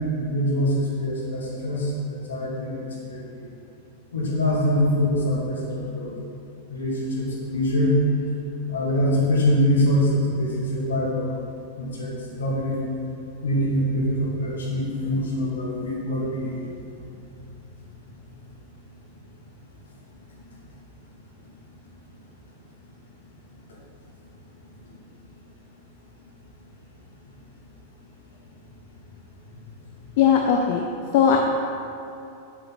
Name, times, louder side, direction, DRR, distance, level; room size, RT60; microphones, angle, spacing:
voice 1, 0.1-2.7 3.1-3.2 4.1-6.1 6.7-8.0 8.7-11.3 11.8-12.8 13.4-16.5, left 1 dB, 65° left, -4 dB, 2.3 m, -24 dB
voice 2, 30.2-30.8 31.1-31.4, left 8 dB, 50° left, 2 dB, 0.7 m, -18 dB
9.5 x 8.1 x 4.3 m, 2.7 s
figure-of-eight pair, 90°, 0 cm